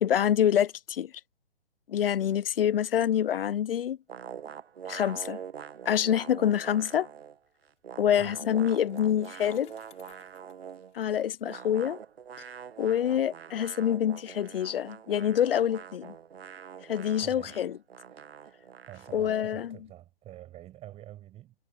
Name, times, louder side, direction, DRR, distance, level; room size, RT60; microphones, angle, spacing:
voice 1, 0.0-1.1 1.9-4.0 4.9-5.4 5.9-7.1 8.0-9.7 10.9-12.0 12.8-16.1 16.9-17.7 19.1-19.8, left 10 dB, 55° left, 0.5 m, -26 dB
sound 1, 4.1-7.4 7.6-10.9 11.4-19.5, right 7 dB, 65° right, 1.5 m, -45 dB
Bicycle, 7.5-12.5, left 14 dB, 20° left, 4.8 m, -63 dB
voice 2, 17.2-17.7 18.1-18.4 18.8-21.5, right 14 dB, 20° right, 6.2 m, -47 dB
figure-of-eight pair, 135°, 34 cm